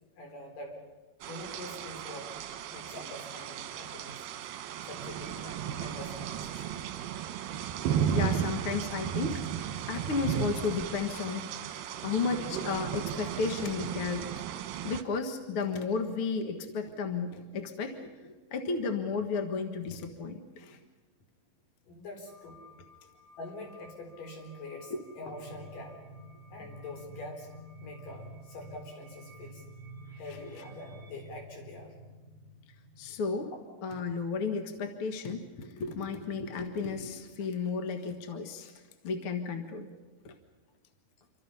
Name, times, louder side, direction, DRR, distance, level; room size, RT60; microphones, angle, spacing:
voice 1, 0.2-0.8 1.3-2.3 2.7-4.2 4.8-6.7 21.9-22.6 23.4-26.0 26.5-27.5 27.8-29.6 30.2-31.9, left 2 dB, 65° left, 2 dB, 5.5 m, -44 dB
sound 1, 1.2-15.0, right 9 dB, 80° right, 2.8 m, -35 dB
voice 2, 8.1-9.4 9.9-14.3 14.8-20.8 24.9-25.0 33.0-33.5 33.8-38.7 39.0-39.9 40.2-40.3, left 5 dB, 50° left, 6 dB, 2.0 m, -33 dB
sound 2, 22.3-31.1, left 2 dB, 30° right, 6.2 m, -59 dB
sound 3, 25.2-33.4, equal, 50° right, 4.7 m, -49 dB
28.0 x 24.5 x 5.7 m, 1.3 s
omnidirectional pair, 4.0 m